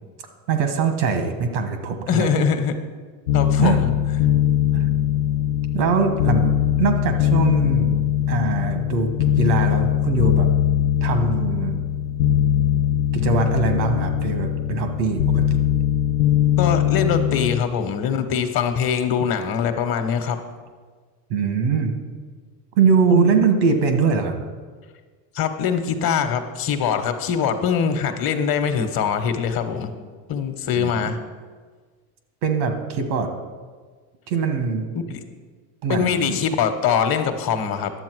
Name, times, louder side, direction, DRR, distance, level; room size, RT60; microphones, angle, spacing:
voice 1, 0.5-2.3 3.6-3.8 4.7-4.8 5.7-8.0 8.3-9.1 9.4-10.5 11.0-11.8 13.1-15.4 21.3-21.9 22.8-24.3 30.8-31.1 32.4-33.3 34.3-34.9 35.8-36.4, right 5 dB, 80° right, 6 dB, 1.6 m, -22 dB
voice 2, 2.1-2.8 3.3-3.9 16.6-20.4 23.1-23.4 25.3-29.9 30.3-31.2 35.1-35.2 35.9-37.9, left 7 dB, 45° left, 8 dB, 1.2 m, -23 dB
sound 1, 3.3-17.6, left 11 dB, 75° left, 0.7 m, -21 dB
11.0 x 7.4 x 4.7 m, 1.5 s
supercardioid pair, 100°, 49 cm